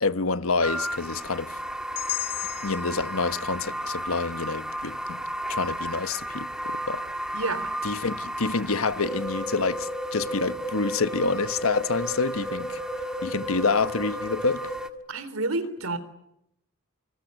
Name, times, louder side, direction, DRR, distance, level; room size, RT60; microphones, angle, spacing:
voice 1, 0.0-1.6 2.6-5.2 5.5-7.0 7.8-14.8, left 4 dB, 85° left, 1.2 m, -28 dB
sound 1, 0.6-14.9, equal, 5° right, 1.7 m, -33 dB
sound 2, 2.0-6.0, left 16 dB, 60° left, 2.9 m, -38 dB
voice 2, 7.3-7.7 15.1-16.0, right 2 dB, 85° right, 3.6 m, -29 dB
27.5 x 26.5 x 8.1 m
head